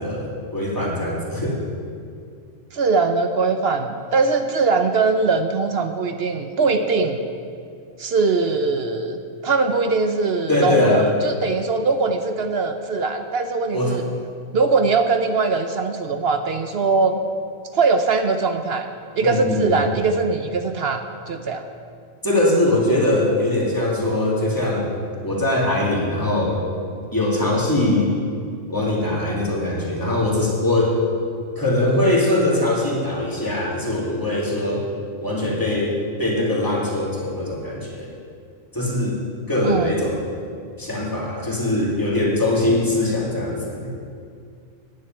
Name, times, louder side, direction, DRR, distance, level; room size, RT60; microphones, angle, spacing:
voice 1, 0.0-1.6 10.5-11.1 13.7-14.0 19.2-19.8 22.2-24.9 25.2-26.6 27.1-28.1 28.7-30.9 31.6-34.8 35.2-38.1 38.7-39.2 39.5-40.2 40.8-43.9, left 1 dB, 15° left, -5 dB, 2.5 m, -21 dB
voice 2, 2.7-7.2 8.0-14.0 14.5-17.2 17.7-18.9 19.2-21.6 39.6-39.9, right 4 dB, 55° right, 7 dB, 0.9 m, -21 dB
10.0 x 8.0 x 9.0 m, 2.3 s
omnidirectional pair, 1.4 m